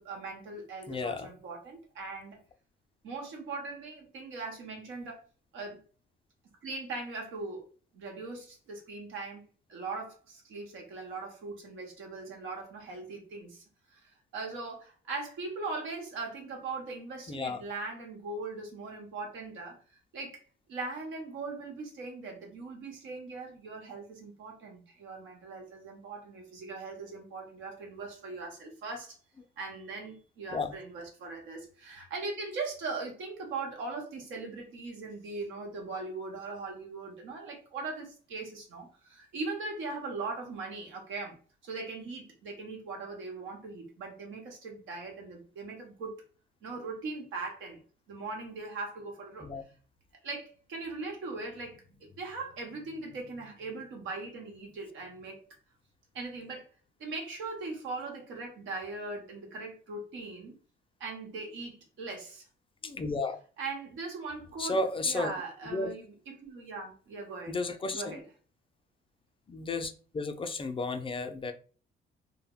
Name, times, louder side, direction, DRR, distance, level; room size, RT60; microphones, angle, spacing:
voice 1, 0.0-2.4 3.0-5.2 5.5-5.8 6.6-7.6 7.9-13.6 13.9-19.8 20.1-20.4 20.7-29.2 29.6-41.4 41.6-46.2 46.6-47.8 48.1-49.5 50.2-55.4 56.1-56.7 57.0-60.5 61.0-62.4 63.6-64.8 65.0-67.6 67.9-68.2, right 3 dB, 85° right, 1 dB, 1.0 m, -40 dB
voice 2, 0.9-1.3 17.3-17.6 30.5-30.7 49.4-49.6 62.8-63.4 64.6-65.3 65.7-65.9 67.5-68.1 69.5-71.5, left 3 dB, 25° left, 7 dB, 0.4 m, -33 dB
2.1 x 2.1 x 3.6 m, 0.38 s
cardioid pair, 90°, 20 cm